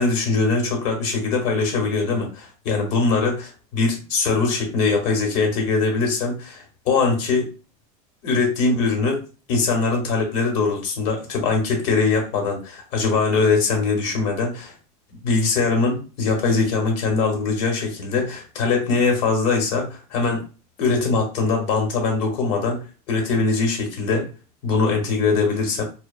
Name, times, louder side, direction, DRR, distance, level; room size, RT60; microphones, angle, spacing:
voice 1, 0.0-7.5 8.2-9.2 9.5-14.7 15.2-20.4 20.8-24.3 24.6-25.8, left 4 dB, 40° left, 2 dB, 1.0 m, -22 dB
2.9 x 2.1 x 2.3 m, 0.34 s
supercardioid pair, 175°, 19 cm